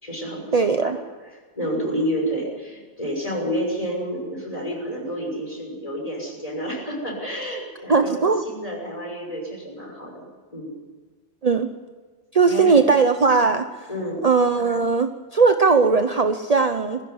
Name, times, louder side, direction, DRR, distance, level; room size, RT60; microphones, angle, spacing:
voice 1, 0.0-0.9 1.2-10.3 10.5-10.8 12.5-12.8 13.9-14.2, equal, 30° left, -1 dB, 6.4 m, -30 dB
voice 2, 0.5-1.0 7.9-8.4 11.4-11.7 12.3-13.7 14.2-17.0, right 4 dB, 35° right, 7 dB, 0.9 m, -18 dB
20.0 x 16.0 x 10.0 m, 1.4 s
omnidirectional pair, 1.2 m